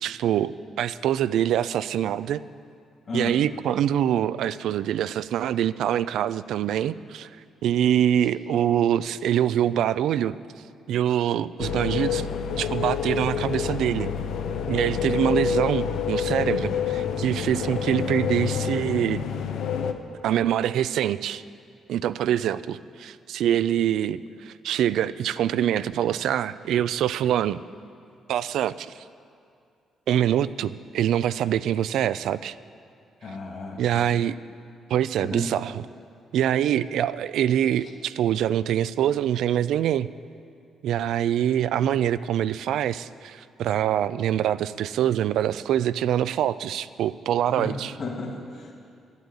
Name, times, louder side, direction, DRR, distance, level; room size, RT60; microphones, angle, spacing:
voice 1, 0.0-2.4 3.1-7.3 7.6-10.4 10.9-14.1 14.7-19.2 20.2-21.4 21.9-27.6 28.3-29.0 30.1-32.6 33.8-34.4 34.9-35.8 36.3-40.1 40.8-47.9, right 10 dB, 80° right, 15 dB, 0.4 m, -24 dB
sound 1, 11.6-19.9, left 7 dB, 80° left, 0.8 m, -27 dB
voice 2, 33.2-34.0 35.2-35.5 47.6-48.7, left 2 dB, 50° left, -1 dB, 2.3 m, -33 dB
12.0 x 8.1 x 9.8 m, 2.3 s
cardioid pair, 90°, 0 cm